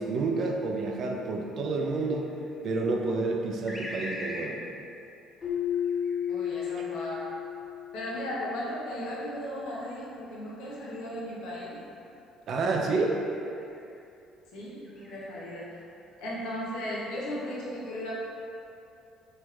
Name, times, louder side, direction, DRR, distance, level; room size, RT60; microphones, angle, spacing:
voice 1, 0.0-2.2 2.6-4.6 12.5-13.2, right 3 dB, 55° right, 1 dB, 0.4 m, -29 dB
sound 1, 1.9-2.7 3.7-4.6 5.5-7.4 8.1-11.4 11.9-12.2 13.1-14.0 14.8-15.5 16.0-16.9, left 1 dB, 15° left, 0.6 m, -45 dB
Keyboard (musical), 5.4-8.2, left 9 dB, 50° left, 1.2 m, -32 dB
voice 2, 6.3-7.3 7.9-11.8 14.5-15.8 16.2-18.1, equal, 75° left, -6 dB, 0.6 m, -36 dB
3.2 x 3.0 x 2.3 m, 2.7 s
supercardioid pair, 65°, 0 cm